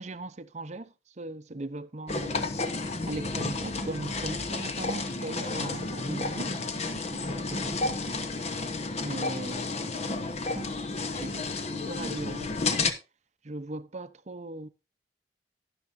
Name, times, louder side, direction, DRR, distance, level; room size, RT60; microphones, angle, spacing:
voice 1, 0.0-2.4 2.7-7.9 9.0-9.9 10.5-10.7 11.2-12.6 13.4-14.7, right 2 dB, 40° right, 0.7 m, -39 dB
sound 1, 2.1-12.9, left 3 dB, 40° left, 1.0 m, -31 dB
12.0 x 11.0 x 2.6 m
head